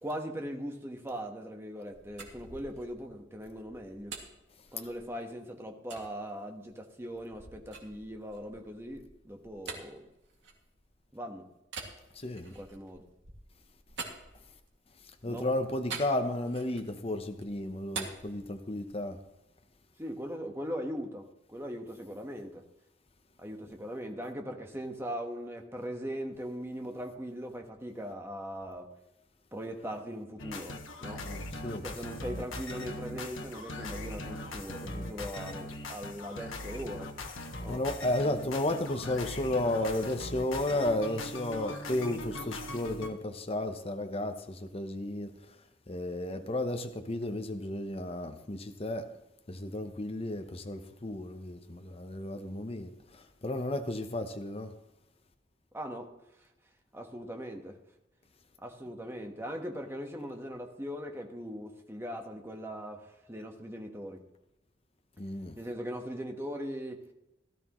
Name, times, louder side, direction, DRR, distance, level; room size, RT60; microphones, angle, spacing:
voice 1, 0.0-4.1 4.7-10.1 11.1-11.5 12.5-13.0 15.3-15.5 20.0-22.6 23.4-28.9 29.5-31.3 31.8-37.1 37.6-37.8 55.7-56.1 56.9-57.8 58.6-64.2 65.6-67.0, equal, 15° right, 1.2 m, -40 dB
sound 1, 1.9-5.3 5.9-6.1 6.6-11.1 11.6-14.9 15.9-17.0 17.3-19.1, right 5 dB, 70° right, 2.2 m, -46 dB
voice 2, 12.1-12.5 15.2-19.2 31.2-31.8 37.7-45.6 45.9-49.1 49.5-54.7 65.2-65.6, left 1 dB, 30° left, 0.8 m, -33 dB
sound 2, 30.4-43.1, left 2 dB, 90° left, 1.4 m, -40 dB
16.5 x 13.0 x 3.1 m
head